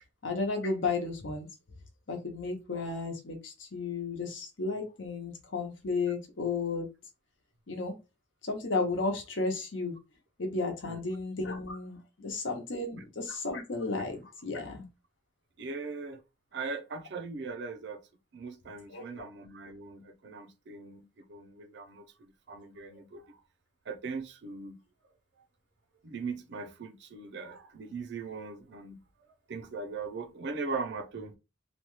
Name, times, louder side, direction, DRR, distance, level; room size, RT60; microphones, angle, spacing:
voice 1, 0.2-1.5 2.1-6.9 7.7-7.9 8.4-9.9 10.4-14.9 18.9-19.2, left 3 dB, 70° left, 0.8 m, -33 dB
voice 2, 15.6-16.2 16.5-18.0 18.3-23.4 23.9-24.8 26.0-29.0 29.5-31.4, right 4 dB, 60° right, 0.5 m, -40 dB
2.9 x 2.2 x 3.0 m
head